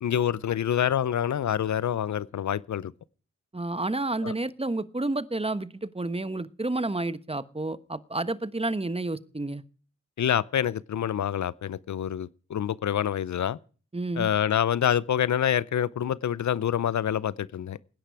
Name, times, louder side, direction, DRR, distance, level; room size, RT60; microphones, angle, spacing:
voice 1, 0.0-2.9 4.2-4.3 10.2-13.6 14.2-17.8, left 9 dB, 65° left, 0.6 m, -26 dB
voice 2, 3.5-9.6 13.9-14.3, right 2 dB, 20° right, 1.2 m, -30 dB
18.0 x 10.0 x 4.8 m
cardioid pair, 45°, 30 cm